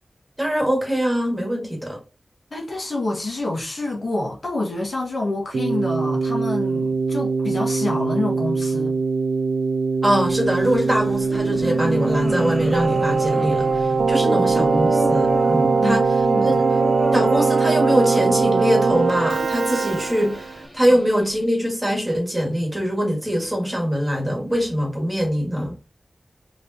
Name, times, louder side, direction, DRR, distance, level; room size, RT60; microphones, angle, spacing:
voice 1, 0.4-2.0 10.0-16.1 16.4-16.6 17.1-25.7, equal, 15° right, 1.7 m, -23 dB
voice 2, 2.5-9.0 15.8-16.6, left 2 dB, 55° left, 1.3 m, -27 dB
Keyboard (musical), 5.5-20.6, right 4 dB, 85° right, 0.4 m, -21 dB
sound 1, 10.2-21.4, equal, 10° left, 1.8 m, -31 dB
sound 2, 13.3-13.8 14.3-14.8 15.3-15.8 16.3-16.8 17.3-17.8, right 1 dB, 40° left, 1.3 m, -39 dB
4.9 x 3.2 x 2.7 m
wide cardioid pair, 75°, 0 cm